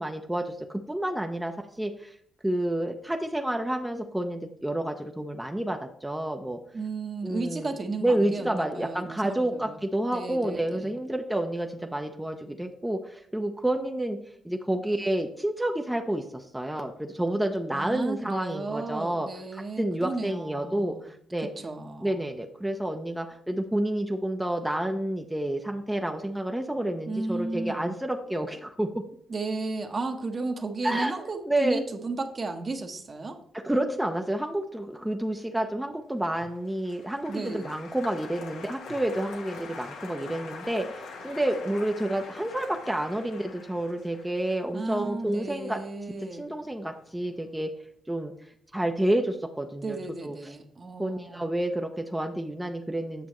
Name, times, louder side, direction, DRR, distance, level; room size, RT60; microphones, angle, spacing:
voice 1, 0.0-2.2 2.4-6.6 7.2-7.7 8.0-14.2 14.4-21.5 22.0-28.9 30.8-31.2 31.4-31.8 33.5-45.8 46.3-47.7 48.1-48.3 48.7-50.5 51.0-53.3, right 1 dB, 5° right, 4 dB, 0.7 m, -29 dB
voice 2, 6.7-9.8 10.1-11.0 17.7-21.1 21.6-22.2 27.1-27.9 29.3-33.4 37.3-37.8 44.7-46.5 49.8-51.5, right 3 dB, 40° right, 5 dB, 1.1 m, -34 dB
Applause, 36.3-46.7 46.9-47.5, left 4 dB, 90° left, 1.2 m, -44 dB
8.3 x 6.2 x 3.1 m, 0.65 s
cardioid pair, 75°, 0 cm